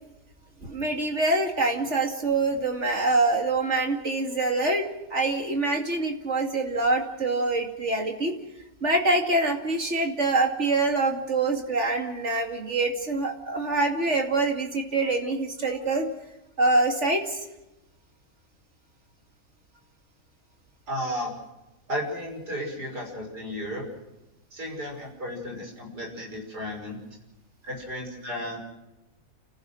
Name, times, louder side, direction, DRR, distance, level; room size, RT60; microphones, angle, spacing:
voice 1, 0.6-8.3 8.8-16.1 16.6-17.4, right 2 dB, 45° right, 3 dB, 2.8 m, -25 dB
voice 2, 20.9-21.3 21.9-23.9 24.5-27.0 27.6-28.6, equal, 90° right, 0 dB, 6.7 m, -33 dB
29.5 x 15.5 x 6.3 m, 0.98 s
omnidirectional pair, 1.7 m